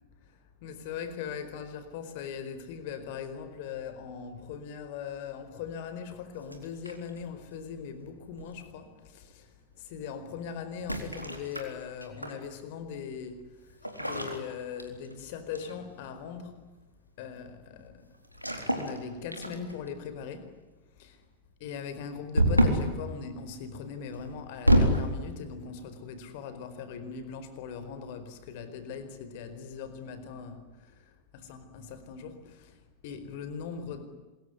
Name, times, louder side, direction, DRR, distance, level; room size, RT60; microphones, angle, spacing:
voice 1, 0.3-16.6 17.2-18.1 18.7-20.5 21.0-21.2 21.6-31.1 31.5-34.0, left 6 dB, 50° left, 10 dB, 4.6 m, -40 dB
sound 1, 6.4-7.2 8.4-8.7 10.8-12.4 13.8-15.2 15.5-15.8 18.3-19.0 19.3-19.9 22.3-22.9 24.1-25.1, equal, 90° left, 4.0 m, -27 dB
27.0 x 22.0 x 9.7 m, 1.2 s
figure-of-eight pair, 90°, 0 cm